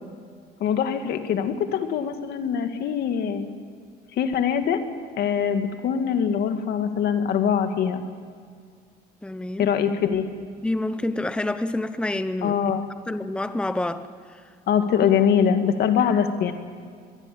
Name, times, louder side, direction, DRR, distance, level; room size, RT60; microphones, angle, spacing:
voice 1, 0.6-3.5 4.2-4.8 5.2-8.0 9.6-10.3 12.4-12.9 14.7-16.5, left 8 dB, 70° left, 7 dB, 2.2 m, -23 dB
voice 2, 9.2-9.7 10.6-12.6 13.1-14.4, left 2 dB, 5° left, 11 dB, 0.9 m, -28 dB
23.5 x 21.5 x 8.6 m, 2.1 s
cardioid pair, 110°, 17 cm